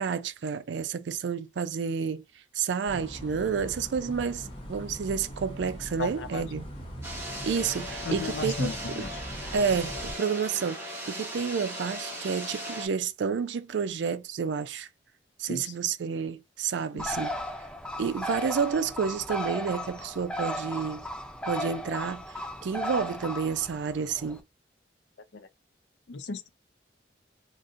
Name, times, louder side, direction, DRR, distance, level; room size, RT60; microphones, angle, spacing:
voice 1, 0.0-2.2 2.5-6.7 7.4-9.0 9.5-14.9 15.4-17.4 18.0-21.0 21.5-24.4, right 6 dB, 80° right, 0.4 m, -30 dB
sound 1, 2.9-10.1, equal, 30° left, 0.8 m, -41 dB
voice 2, 6.0-6.4 8.1-9.1 15.5-15.7 16.9-17.1 25.3-25.5 26.1-26.5, left 4 dB, 75° left, 0.5 m, -35 dB
sound 2, 7.0-12.9, equal, 15° right, 1.1 m, -38 dB
Bird, 17.0-24.4, equal, 5° left, 0.3 m, -35 dB
3.8 x 2.6 x 2.5 m
head